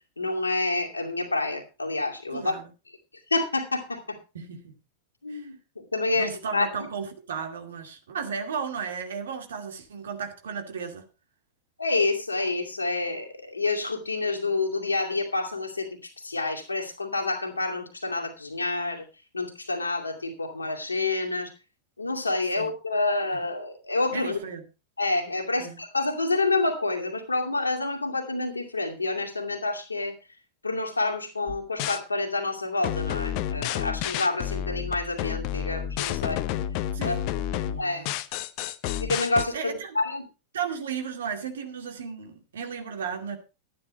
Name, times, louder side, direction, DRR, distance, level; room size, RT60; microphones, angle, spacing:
voice 1, 0.2-2.5 3.3-4.2 5.2-6.7 11.8-19.1 19.3-21.5 22.0-24.4 25.0-30.1 30.6-36.4 37.0-37.2 37.8-38.1 39.0-40.2, left 2 dB, 80° left, 2.5 m, -28 dB
voice 2, 2.3-2.6 4.3-4.7 5.3-5.5 6.1-11.1 22.6-22.7 24.1-24.6 25.6-25.8 36.9-37.3 37.6-38.1 39.5-40.0 40.5-43.4, right 6 dB, 65° right, 2.3 m, -34 dB
sound 1, 31.5-32.0 32.8-39.5, left 11 dB, 45° left, 0.9 m, -30 dB
12.0 x 10.5 x 4.3 m
figure-of-eight pair, 90°, 0 cm